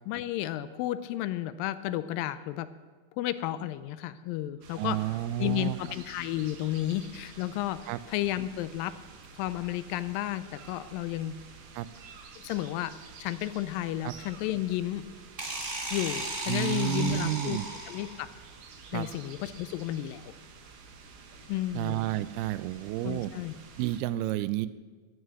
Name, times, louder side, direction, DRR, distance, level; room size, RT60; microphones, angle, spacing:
voice 1, 0.1-2.7 3.2-5.0 5.4-7.8 8.1-8.9 9.4-11.3 12.4-12.9 13.2-15.1 15.9-17.6 17.9-18.3 18.9-20.3 21.5-22.1 23.0-23.5, left 14 dB, 80° left, 13 dB, 2.1 m, -32 dB
sound 1, 4.6-24.0, right 4 dB, 60° right, 2.4 m, -50 dB
voice 2, 4.7-5.8 7.9-8.0 11.8-11.9 14.0-14.1 16.5-17.7 18.9-19.1 21.8-23.3 23.8-24.7, right 15 dB, 85° right, 15 dB, 2.5 m, -30 dB
sound 2, 15.4-18.3, right 2 dB, 45° right, 0.6 m, -35 dB
14.5 x 6.5 x 9.3 m, 1.4 s
omnidirectional pair, 4.5 m